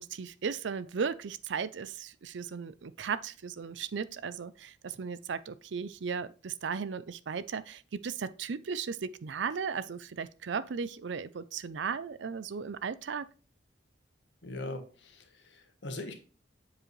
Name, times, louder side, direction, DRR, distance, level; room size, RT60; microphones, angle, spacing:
voice 1, 0.0-13.3, right 6 dB, 70° right, 0.5 m, -36 dB
voice 2, 14.4-16.1, left 2 dB, 70° left, 1.4 m, -41 dB
7.6 x 4.8 x 3.2 m
head